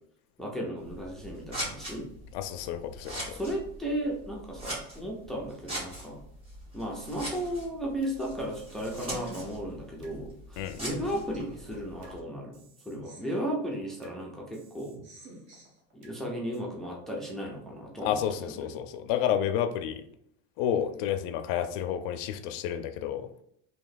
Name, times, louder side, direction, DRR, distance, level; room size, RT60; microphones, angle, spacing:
voice 1, 0.4-2.1 3.3-6.2 6.7-15.0 15.9-18.7, equal, ahead, -1 dB, 0.4 m, -35 dB
Scissors, 0.8-12.2, right 1 dB, 20° right, 1.4 m, -42 dB
voice 2, 2.3-3.4 10.6-10.8 18.0-20.0 20.6-23.3, left 9 dB, 60° left, 8 dB, 0.5 m, -30 dB
sound 1, 7.3-8.2 8.5-10.2 10.5-12.2 12.5-14.2 14.5-16.2 16.5-16.6, right 2 dB, 40° right, 1.1 m, -50 dB
3.0 x 2.8 x 4.0 m, 0.69 s
cardioid pair, 165°, 29 cm